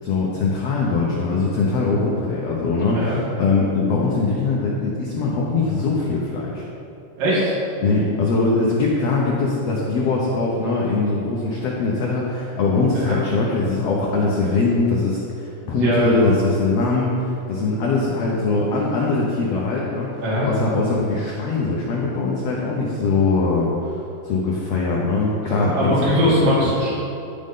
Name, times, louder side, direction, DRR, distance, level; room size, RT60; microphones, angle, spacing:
voice 1, 0.0-6.6 7.8-23.7 24.2-26.1, left 3 dB, 65° left, -4 dB, 1.7 m, -22 dB
voice 2, 7.2-7.5 12.9-13.2 15.6-16.3 20.2-20.5 25.5-26.9, equal, 75° right, -9 dB, 4.1 m, -20 dB
14.5 x 5.3 x 3.8 m, 2.7 s
omnidirectional pair, 3.9 m